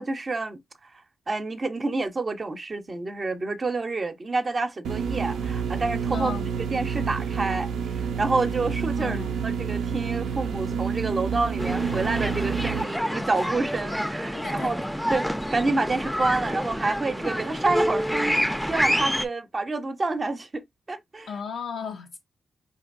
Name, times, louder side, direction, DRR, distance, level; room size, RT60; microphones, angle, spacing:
voice 1, 0.0-6.3 6.7-14.8 15.1-21.3, right 3 dB, 45° right, 0.6 m, -28 dB
sound 1, 4.8-12.8, right 7 dB, 85° right, 0.4 m, -28 dB
voice 2, 6.1-6.5 9.0-9.4 14.3-14.7 21.3-22.2, left 6 dB, 80° left, 0.4 m, -35 dB
sound 2, 11.6-19.3, equal, ahead, 0.4 m, -28 dB
4.4 x 2.8 x 2.4 m
supercardioid pair, 45°, 0 cm